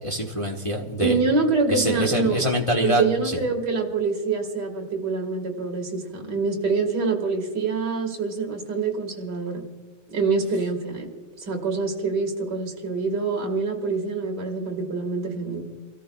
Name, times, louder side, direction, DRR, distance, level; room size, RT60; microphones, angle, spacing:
voice 1, 0.0-1.2 1.7-3.0, equal, 30° left, 0 dB, 0.5 m, -24 dB
voice 2, 1.0-2.4 2.8-9.6 10.1-11.1 11.4-15.6, right 4 dB, 50° right, 2 dB, 2.2 m, -25 dB
30.0 x 14.0 x 2.3 m, 1.3 s
omnidirectional pair, 2.4 m